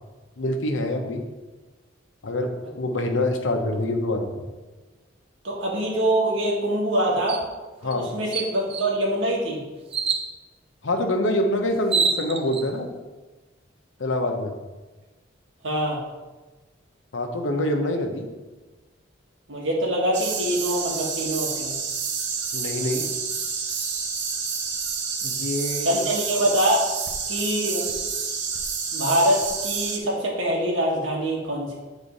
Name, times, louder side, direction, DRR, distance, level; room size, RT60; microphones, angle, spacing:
voice 1, 0.4-1.2 2.2-4.4 7.8-8.1 10.8-12.9 14.0-14.6 17.1-18.3 22.5-23.1 25.2-26.0, left 1 dB, 90° left, 4 dB, 0.9 m, -25 dB
voice 2, 5.4-7.4 7.8-9.6 15.6-16.0 19.5-21.8 25.8-26.9 27.3-27.9 28.9-31.7, right 1 dB, 85° right, -3 dB, 1.9 m, -24 dB
sound 1, 7.3-7.5 7.9-8.0 8.3-8.9 9.9-10.3 11.4-11.5 11.8-12.6, right 5 dB, 30° right, 0.5 m, -25 dB
sound 2, 20.1-30.0, right 6 dB, 65° right, 0.9 m, -29 dB
9.0 x 4.1 x 4.1 m, 1.2 s
head